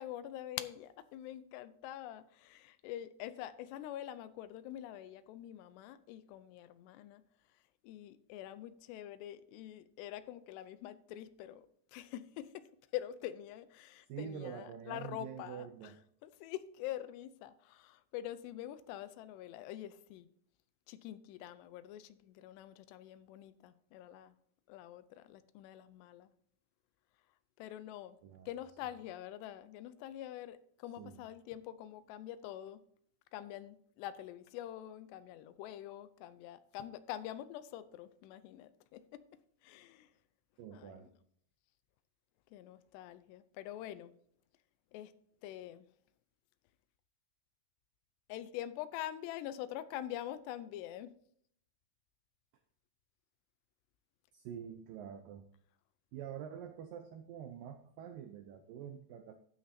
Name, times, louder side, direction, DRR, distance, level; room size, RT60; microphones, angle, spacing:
voice 1, 0.0-7.2 7.8-11.6 11.9-12.7 12.9-15.9 16.2-20.3 20.9-24.3 24.7-26.3 27.6-28.2 28.5-32.8 33.3-39.2 39.6-40.1 40.7-41.1 42.5-44.1 44.9-45.1 45.4-45.9 48.3-51.1, left 12 dB, 85° left, 14 dB, 2.8 m, -45 dB
voice 2, 14.1-16.0 28.2-28.5 31.0-31.2 40.6-41.1 54.3-55.5 56.1-59.4, right 8 dB, 85° right, 7 dB, 2.0 m, -46 dB
12.0 x 9.5 x 2.7 m, 0.66 s
omnidirectional pair, 4.8 m